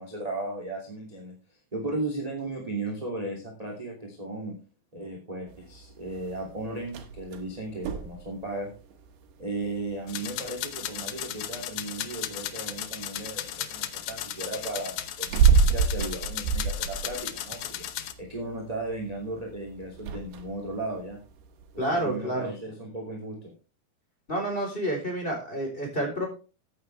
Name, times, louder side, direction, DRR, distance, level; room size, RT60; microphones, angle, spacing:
voice 1, 0.0-4.6 4.9-8.7 9.4-17.8 18.2-21.2 21.9-23.5, right 2 dB, 10° right, 1 dB, 2.1 m, -36 dB
sound 1, 5.5-22.2, right 6 dB, 85° right, 3.6 m, -31 dB
sound 2, 10.1-18.1, left 11 dB, 80° left, 1.7 m, -35 dB
voice 2, 21.8-22.5 24.3-26.3, right 1 dB, 15° left, 1 dB, 3.8 m, -29 dB
14.0 x 9.2 x 3.4 m, 0.34 s
omnidirectional pair, 4.7 m